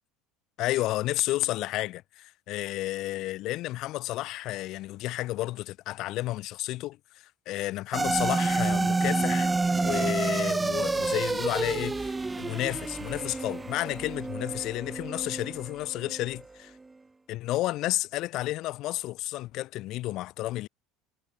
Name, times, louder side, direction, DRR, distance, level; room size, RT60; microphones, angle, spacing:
voice 1, 0.6-7.0 7.5-16.7 17.3-20.7, left 17 dB, 55° left, 0.8 m, -31 dB
sound 1, 7.9-16.4, right 3 dB, 10° right, 1.4 m, -29 dB
cardioid pair, 135°, 0 cm